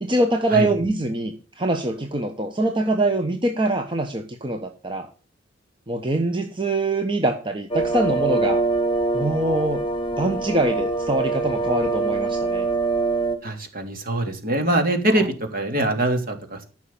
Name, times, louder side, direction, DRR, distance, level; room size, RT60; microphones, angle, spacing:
voice 1, 0.0-5.1 5.9-8.6 9.1-9.8 10.2-12.7, right 2 dB, 25° right, 5 dB, 1.2 m, -24 dB
sound 1, 7.7-13.4, right 3 dB, 25° left, 1.6 m, -24 dB
voice 2, 13.4-15.2 15.5-16.6, right 1 dB, 50° right, 5 dB, 3.0 m, -23 dB
14.5 x 6.4 x 7.2 m, 0.37 s
head